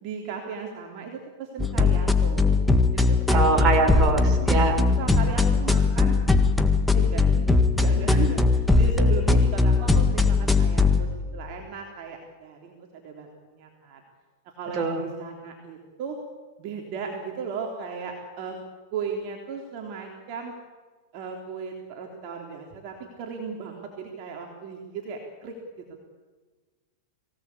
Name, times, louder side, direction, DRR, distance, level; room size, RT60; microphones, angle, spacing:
voice 1, 0.0-2.6 2.9-3.4 4.4-6.2 6.9-7.5 7.7-14.0 14.5-16.2 16.6-18.6 18.9-20.5 21.1-25.6, right 5 dB, 50° right, 1 dB, 3.4 m, -36 dB
sound 1, 1.6-11.0, left 3 dB, 5° left, 1.7 m, -20 dB
voice 2, 3.3-4.8 14.7-15.0, right 4 dB, 30° right, 4 dB, 5.0 m, -23 dB
23.0 x 17.5 x 8.6 m, 1.3 s
hypercardioid pair, 120°, 0 cm